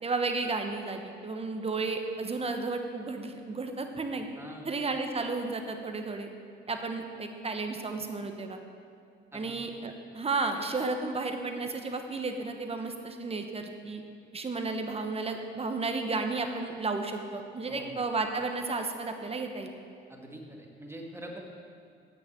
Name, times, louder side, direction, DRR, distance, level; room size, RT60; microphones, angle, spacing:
voice 1, 0.0-4.3 4.6-6.3 6.7-8.6 9.3-14.0 14.3-19.7, right 3 dB, 30° right, 5 dB, 1.0 m, -33 dB
voice 2, 4.4-4.7 9.3-9.6 17.7-18.0 20.1-21.4, right 1 dB, 10° right, 0 dB, 1.7 m, -44 dB
8.6 x 6.4 x 8.4 m, 2.3 s
cardioid pair, 90°, 20 cm